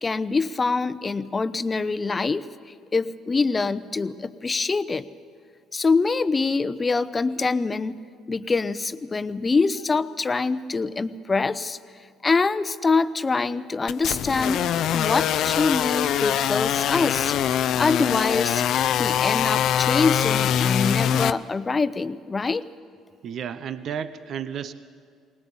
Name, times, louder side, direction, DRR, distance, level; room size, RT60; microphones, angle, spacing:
voice 1, 0.0-2.4 2.9-5.1 5.7-8.0 8.3-11.8 12.2-14.6 14.9-17.3 17.8-18.6 19.0-22.6, left 4 dB, 30° left, 14 dB, 0.8 m, -24 dB
sound 1, 13.9-21.3, left 10 dB, 65° left, 0.5 m, -23 dB
voice 2, 23.2-24.7, right 8 dB, 60° right, 13 dB, 0.8 m, -32 dB
20.5 x 19.0 x 7.2 m, 2.2 s
supercardioid pair, 65°, 0 cm